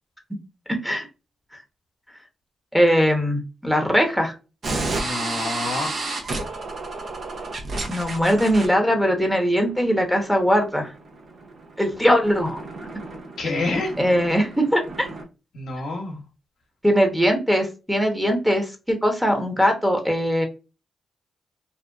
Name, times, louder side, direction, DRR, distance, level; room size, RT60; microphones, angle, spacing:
voice 1, 0.7-1.1 2.7-4.3 7.9-10.9 11.8-12.6 14.0-15.1 16.8-20.5, equal, 5° right, 4 dB, 0.8 m, -20 dB
sound 1, 4.6-15.2, right 2 dB, 60° right, 0.7 m, -33 dB
voice 2, 4.9-5.9 13.4-13.9 15.5-16.2, left 2 dB, 75° left, 1 dB, 0.7 m, -27 dB
2.5 x 2.1 x 2.3 m, 0.30 s
supercardioid pair, 50°, 0 cm